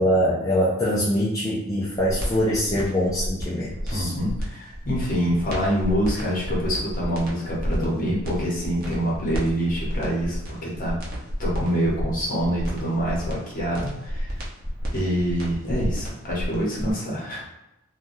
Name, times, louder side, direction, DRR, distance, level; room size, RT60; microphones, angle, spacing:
voice 1, 0.0-4.1, equal, 15° left, -8 dB, 0.4 m, -23 dB
sound 1, 1.8-16.9, equal, 45° right, 0.7 m, -31 dB
voice 2, 3.9-11.0 11.4-14.4 14.9-17.4, equal, 40° left, -4 dB, 0.9 m, -26 dB
3.3 x 2.3 x 2.6 m, 0.92 s
head